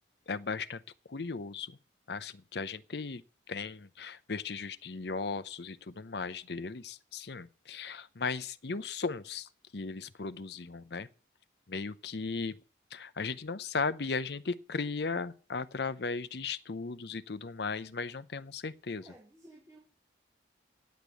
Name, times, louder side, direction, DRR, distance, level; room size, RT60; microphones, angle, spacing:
voice 1, 0.3-0.8 1.1-1.8 2.1-3.2 3.5-11.1 11.7-12.6 12.9-19.0, left 4 dB, 60° left, 0.7 m, -36 dB
voice 2, 19.0-19.8, right 1 dB, 15° right, 3.8 m, -55 dB
10.5 x 8.2 x 8.3 m
head